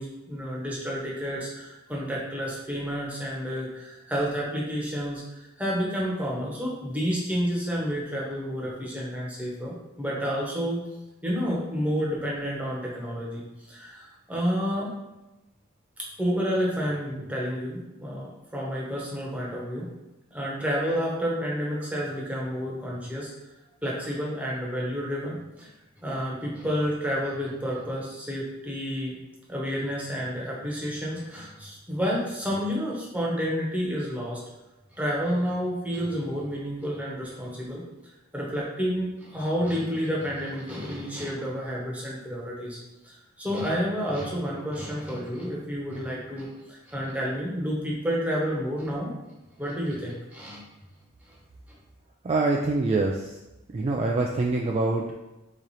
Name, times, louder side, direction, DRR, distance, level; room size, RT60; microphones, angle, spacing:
voice 1, 0.0-10.8 11.2-13.4 13.7-14.9 16.2-19.9 20.3-23.3 23.8-25.7 26.0-29.1 29.5-34.4 34.9-37.8 38.3-42.8 43.0-49.1 49.6-50.6 51.3-51.4, equal, 5° right, -4 dB, 1.0 m, -30 dB
voice 2, 52.2-53.4 53.7-55.1, right 3 dB, 30° right, 0 dB, 0.3 m, -25 dB
3.8 x 3.1 x 4.1 m, 1.0 s
head